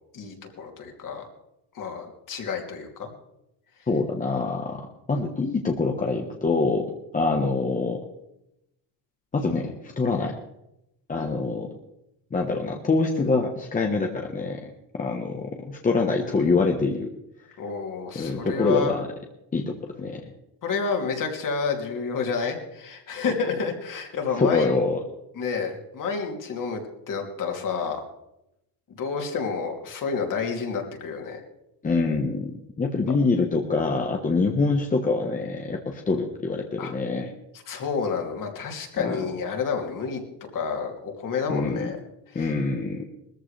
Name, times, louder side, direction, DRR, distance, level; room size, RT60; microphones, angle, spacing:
voice 1, 0.1-1.2 1.7-3.1 17.6-18.9 20.6-24.7 25.4-26.8 27.1-28.0 29.0-31.4 36.8-36.9 37.7-40.2 40.5-42.0 42.3-42.5, left 5 dB, 45° left, 2 dB, 2.9 m, -29 dB
voice 2, 3.9-4.8 5.1-6.9 7.1-8.0 9.3-10.3 11.1-11.7 12.3-14.7 14.9-17.1 18.1-19.0 19.5-20.2 24.4-25.0 31.8-37.3 39.0-39.2 41.5-41.9 42.3-43.0, left 3 dB, 20° left, 2 dB, 1.2 m, -25 dB
20.0 x 14.0 x 3.4 m, 0.85 s
cardioid pair, 135°, 45 cm